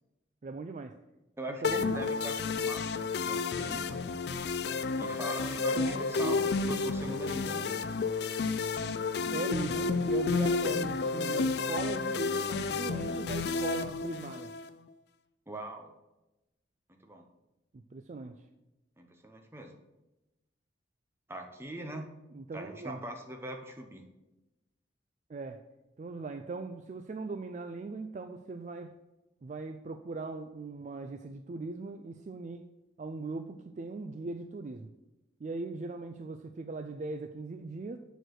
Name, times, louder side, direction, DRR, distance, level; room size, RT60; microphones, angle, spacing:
voice 1, 0.4-1.0 1.5-2.0 5.7-6.8 9.3-14.5 17.7-18.4 22.3-23.0 25.3-25.6 26.0-29.0 29.4-32.7 33.0-34.9 35.4-38.0, right 3 dB, 40° right, 7 dB, 0.3 m, -39 dB
voice 2, 1.4-4.0 5.0-7.7 15.5-15.9 16.9-17.2 19.0-19.7 21.3-22.0 22.5-24.1, right 1 dB, 15° right, 3 dB, 0.7 m, -42 dB
sound 1, 1.6-14.7, left 4 dB, 60° left, 0.4 m, -31 dB
6.7 x 4.5 x 6.4 m, 0.99 s
head